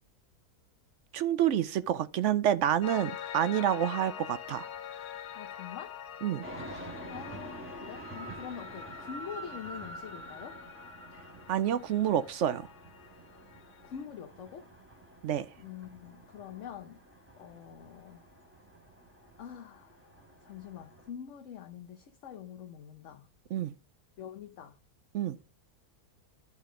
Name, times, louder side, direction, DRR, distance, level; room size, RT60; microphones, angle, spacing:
voice 1, 1.1-4.7 6.2-6.4 11.5-12.7 15.2-15.5 23.5-23.7 25.1-25.4, right 10 dB, 70° right, 0.7 m, -28 dB
Piano, 2.8-14.0, left 9 dB, 80° left, 1.3 m, -45 dB
voice 2, 5.4-5.9 7.1-10.6 13.8-14.7 15.6-17.0 17.3-18.2 19.4-20.0 20.4-23.3 24.2-24.8, left 8 dB, 60° left, 1.0 m, -45 dB
sound 1, 6.4-21.1, right 1 dB, 10° right, 1.6 m, -48 dB
11.0 x 5.1 x 3.7 m
omnidirectional pair, 1.7 m